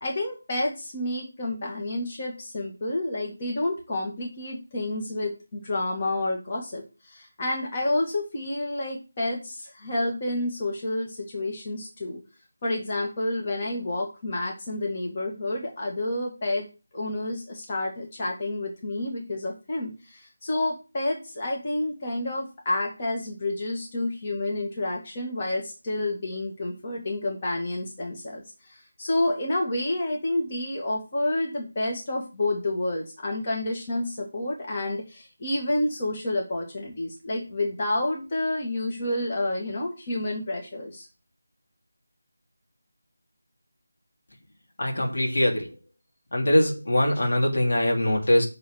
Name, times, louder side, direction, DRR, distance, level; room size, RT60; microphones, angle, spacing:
voice 1, 0.0-12.2 12.6-16.7 16.9-41.1, left 1 dB, 30° left, 0 dB, 2.0 m, -29 dB
voice 2, 44.8-45.7 46.3-48.5, left 1 dB, 65° left, 1 dB, 2.8 m, -22 dB
6.3 x 5.6 x 6.5 m, 0.32 s
figure-of-eight pair, 165°, 0 cm